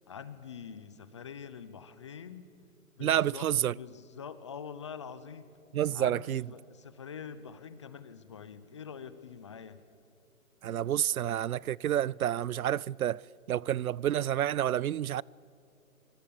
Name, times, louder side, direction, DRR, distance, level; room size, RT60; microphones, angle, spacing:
voice 1, 0.1-2.4 3.0-5.5 5.9-9.8, left 7 dB, 20° left, 0.6 m, -45 dB
voice 2, 3.0-3.7 5.7-6.4 10.6-13.2 13.5-15.2, right 11 dB, 75° right, 0.5 m, -29 dB
25.5 x 24.0 x 7.0 m
hypercardioid pair, 150°, 43 cm